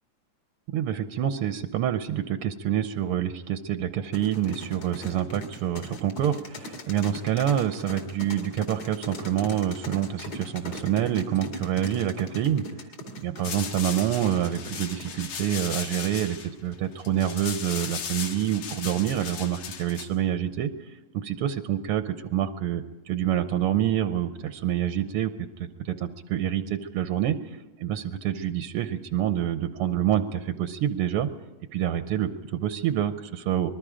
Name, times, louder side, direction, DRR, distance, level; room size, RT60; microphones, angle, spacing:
voice 1, 0.7-12.6 13.2-20.7 21.1-25.3 25.6-27.4 27.8-31.3 31.7-33.7, right 10 dB, 75° right, 9 dB, 1.3 m, -27 dB
sound 1, 4.1-15.6, left 1 dB, 60° left, 3.5 m, -40 dB
sound 2, 13.4-20.1, left 7 dB, 85° left, 3.1 m, -36 dB
25.5 x 20.5 x 5.0 m, 1.1 s
omnidirectional pair, 3.4 m